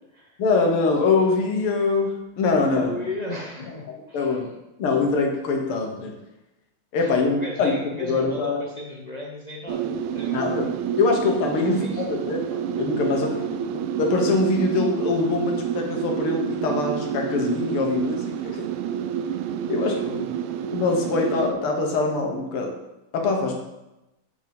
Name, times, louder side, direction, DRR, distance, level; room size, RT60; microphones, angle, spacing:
voice 1, 0.4-3.0 4.1-4.5 4.8-6.1 6.9-8.6 10.3-13.3 13.7-18.7 19.7-19.9 20.7-22.7 23.1-23.5, left 3 dB, 85° left, 1 dB, 2.2 m, -23 dB
voice 2, 2.8-4.4 6.9-10.7 11.6-12.0 13.0-13.7 19.7-20.3 23.4-23.5, left 2 dB, 50° left, -2 dB, 0.4 m, -36 dB
sound 1, 9.7-21.5, right 9 dB, 85° right, 1.5 m, -28 dB
8.0 x 5.2 x 5.3 m, 0.95 s
omnidirectional pair, 2.3 m